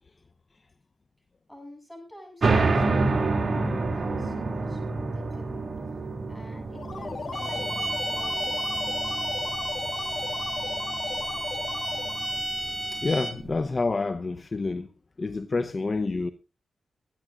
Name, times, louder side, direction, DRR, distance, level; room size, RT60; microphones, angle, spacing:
voice 1, 1.5-3.1 3.5-5.6 6.3-8.6, equal, 5° left, 8.0 m, -47 dB
sound 1, 2.4-13.5, right 3 dB, 50° right, 2.6 m, -29 dB
sound 2, 6.7-12.4, left 4 dB, 60° left, 2.0 m, -37 dB
sound 3, 7.3-13.5, right 1 dB, 30° right, 3.4 m, -32 dB
voice 2, 12.9-14.9 15.2-16.3, left 3 dB, 40° left, 0.8 m, -28 dB
23.5 x 10.5 x 2.5 m
cardioid pair, 65°, 0 cm